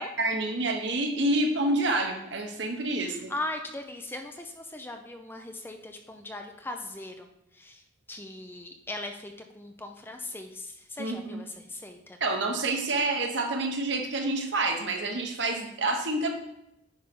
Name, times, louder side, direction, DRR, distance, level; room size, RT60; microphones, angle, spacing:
voice 1, 0.0-3.3 11.0-11.4 12.2-16.3, right 2 dB, 65° right, 4 dB, 1.2 m, -28 dB
voice 2, 3.0-7.3 7.6-7.8 8.1-12.2, left 2 dB, 10° left, 5 dB, 0.5 m, -39 dB
9.6 x 5.5 x 3.7 m, 0.83 s
head